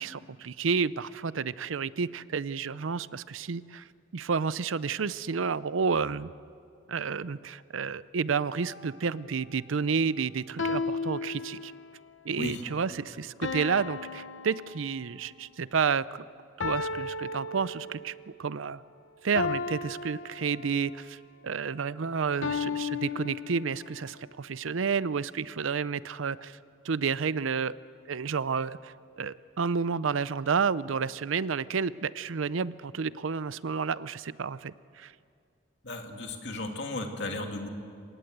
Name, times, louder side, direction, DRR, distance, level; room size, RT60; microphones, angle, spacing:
voice 1, 0.0-3.9 4.1-6.3 6.9-11.7 12.2-16.2 16.6-18.1 18.4-18.8 19.2-26.6 26.8-27.8 28.1-35.1, right 5 dB, 85° right, 18 dB, 0.6 m, -30 dB
sound 1, 8.6-9.0 10.6-12.1 13.4-15.2 16.6-18.2 19.3-21.0 22.4-24.0, left 4 dB, 75° left, 1.0 m, -35 dB
voice 2, 35.8-37.7, left 2 dB, 60° left, 3 dB, 2.5 m, -35 dB
27.0 x 18.5 x 8.0 m, 2.3 s
head